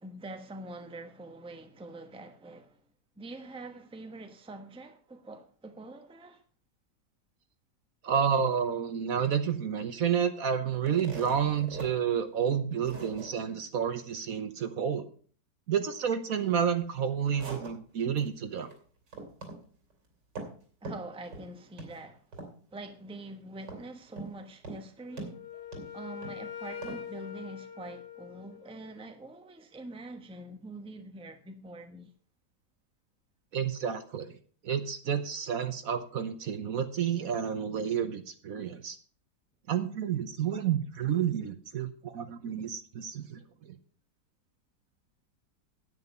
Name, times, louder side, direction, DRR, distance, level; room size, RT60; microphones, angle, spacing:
voice 1, 0.0-2.8 3.2-6.4 20.8-22.2 22.7-25.4 25.9-32.1, right 2 dB, 5° right, 0.9 m, -45 dB
voice 2, 8.0-15.1 15.7-18.7 33.5-34.4 34.6-39.0 39.7-43.8, right 8 dB, 60° right, 1.2 m, -30 dB
sound 1, 10.7-11.9 12.3-12.4 12.8-13.3 16.9-18.2 18.5-18.8 19.1-19.6 19.9-20.6 20.8-21.5 21.8-22.0 22.3-22.8 23.7-24.4 24.6-24.8 25.2-26.4 26.8-27.0, right 3 dB, 85° right, 3.6 m, -42 dB
Wind instrument woodwind instrument, 25.1-28.9, left 8 dB, 50° left, 1.0 m, -43 dB
9.8 x 9.1 x 5.4 m
omnidirectional pair, 1.9 m